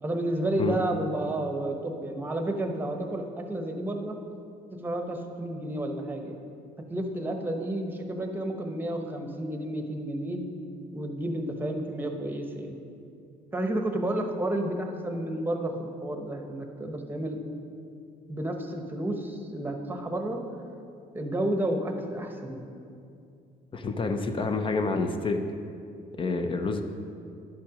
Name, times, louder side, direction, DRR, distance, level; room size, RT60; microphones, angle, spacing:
voice 1, 0.0-4.2 4.7-6.4 6.9-10.5 10.9-12.8 13.5-17.4 18.3-20.4 21.1-22.7, right 1 dB, 10° right, 4 dB, 1.0 m, -31 dB
voice 2, 23.7-25.4 26.2-26.8, left 3 dB, 30° left, 6 dB, 0.6 m, -28 dB
11.0 x 5.8 x 5.0 m, 2.5 s
cardioid pair, 110°, 17 cm